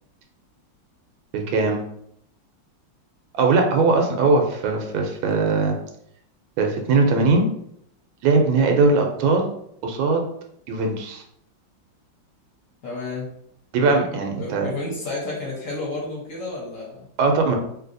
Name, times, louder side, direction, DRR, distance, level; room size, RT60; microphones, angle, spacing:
voice 1, 1.3-1.8 3.3-5.8 6.6-7.5 8.2-9.5 9.8-10.2 10.7-11.2 13.7-14.7 17.2-17.6, right 3 dB, 90° right, 3 dB, 1.4 m, -20 dB
voice 2, 12.8-13.3 14.4-17.1, left 2 dB, 50° left, -4 dB, 1.2 m, -31 dB
3.1 x 2.7 x 2.5 m, 0.71 s
omnidirectional pair, 2.1 m